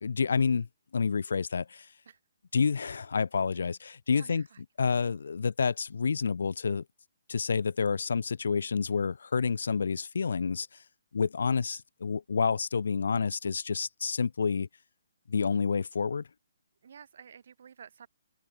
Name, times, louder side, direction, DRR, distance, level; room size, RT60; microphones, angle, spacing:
voice 1, 0.0-0.7 0.9-1.9 2.5-4.5 4.8-6.8 7.3-10.7 11.1-14.7 15.3-16.3, left 5 dB, 75° left, 1.1 m, -29 dB
voice 2, 4.1-4.6 16.8-18.1, right 7 dB, 60° right, 7.2 m, -51 dB
open air
hypercardioid pair, 160°, 0 cm